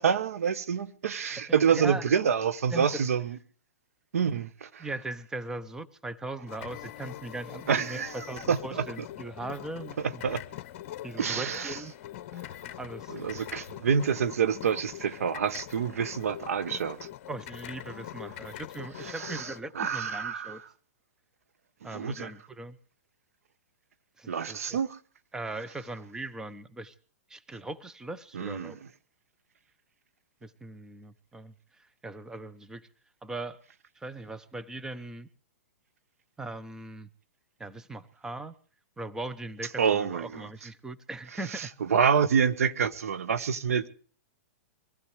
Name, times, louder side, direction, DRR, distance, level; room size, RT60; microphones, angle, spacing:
voice 1, 0.0-3.3 4.1-4.9 7.7-8.2 8.5-8.9 10.0-10.4 11.2-11.8 13.1-17.0 19.0-19.5 19.7-20.6 21.9-22.3 24.3-25.0 28.3-28.8 39.8-40.4 41.5-43.9, right 7 dB, 75° right, 1.2 m, -27 dB
voice 2, 1.5-2.0 2.7-3.1 4.8-10.2 11.0-11.9 12.8-13.1 17.3-20.6 21.8-22.8 24.2-24.8 25.3-26.9 27.3-28.8 30.4-32.9 33.2-33.6 34.0-35.3 36.4-37.1 37.6-38.5 39.0-41.7, right 2 dB, 5° right, 0.8 m, -39 dB
sound 1, 6.5-19.6, left 13 dB, 50° left, 0.9 m, -43 dB
23.5 x 16.0 x 3.3 m
hypercardioid pair, 130°, 8 cm